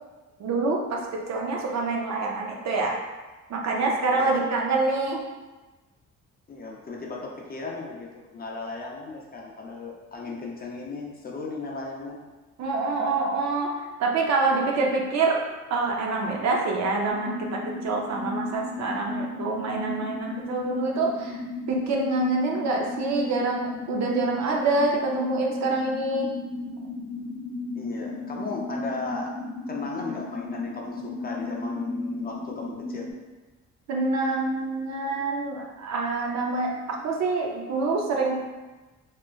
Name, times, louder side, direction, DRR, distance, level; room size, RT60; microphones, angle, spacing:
voice 1, 0.4-3.0 3.5-5.2 12.6-13.7 14.0-15.4 15.7-21.4 21.7-26.3 33.9-38.4, right 3 dB, 60° right, 0 dB, 0.6 m, -26 dB
voice 2, 6.5-12.2 27.8-29.3 29.7-33.1, left 3 dB, 30° left, -2 dB, 0.5 m, -35 dB
sound 1, 17.1-33.1, left 2 dB, 75° left, 0.6 m, -35 dB
2.9 x 2.4 x 2.3 m, 1.2 s
cardioid pair, 90°, 30 cm